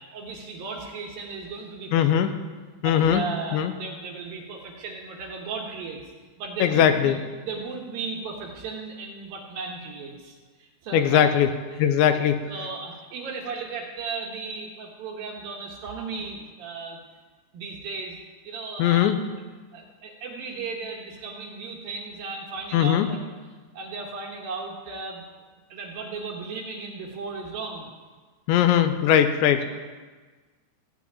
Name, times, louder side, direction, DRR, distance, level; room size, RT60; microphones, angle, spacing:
voice 1, 0.0-2.2 2.8-6.0 6.4-7.2 7.4-11.3 11.7-17.0 17.5-18.2 18.4-19.1 19.7-23.2 23.5-25.2 25.7-27.9 29.6-29.7, right 4 dB, 65° right, 0 dB, 2.6 m, -36 dB
voice 2, 1.9-2.3 2.8-3.2 3.5-3.7 6.6-7.2 10.9-11.5 11.8-12.4 18.8-19.2 22.7-23.1 28.5-29.6, left 9 dB, 85° left, 8 dB, 3.0 m, -20 dB
15.5 x 6.1 x 9.1 m, 1.3 s
omnidirectional pair, 5.3 m